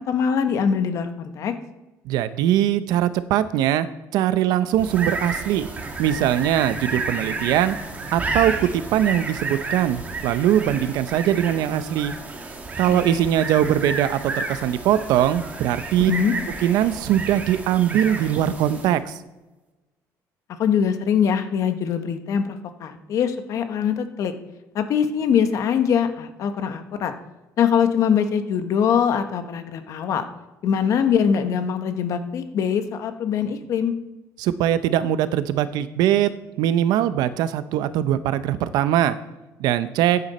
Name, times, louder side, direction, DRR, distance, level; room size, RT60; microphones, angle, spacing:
voice 1, 0.0-1.5 12.9-13.3 16.1-16.3 20.6-24.3 24.7-27.1 27.6-30.2 30.6-33.9, left 7 dB, 50° left, 8 dB, 1.3 m, -22 dB
voice 2, 2.1-3.9 4.1-5.7 6.0-7.7 8.1-12.1 12.8-16.1 16.6-19.1 34.4-36.3 36.6-39.2 39.6-40.2, right 11 dB, 80° right, 13 dB, 0.8 m, -21 dB
sound 1, 4.7-19.0, right 3 dB, 25° right, 1.8 m, -31 dB
14.5 x 9.6 x 4.3 m, 1.1 s
cardioid pair, 155°, 7 cm